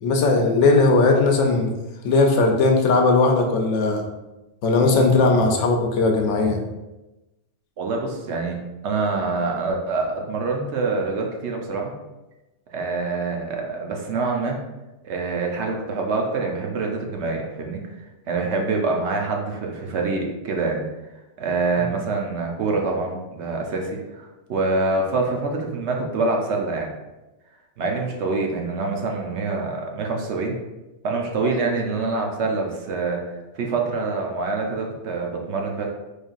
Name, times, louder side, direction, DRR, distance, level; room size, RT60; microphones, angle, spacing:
voice 1, 0.0-1.7 2.0-4.0 4.6-6.6, left 3 dB, 80° left, 2 dB, 0.9 m, -18 dB
voice 2, 7.8-8.6 8.8-11.9 12.7-14.6 15.0-17.8 18.3-20.9 21.4-24.2 24.5-26.9 27.8-30.5 31.0-35.9, right 3 dB, 70° right, 1 dB, 0.9 m, -25 dB
4.4 x 3.2 x 2.4 m, 1.0 s
omnidirectional pair, 1.3 m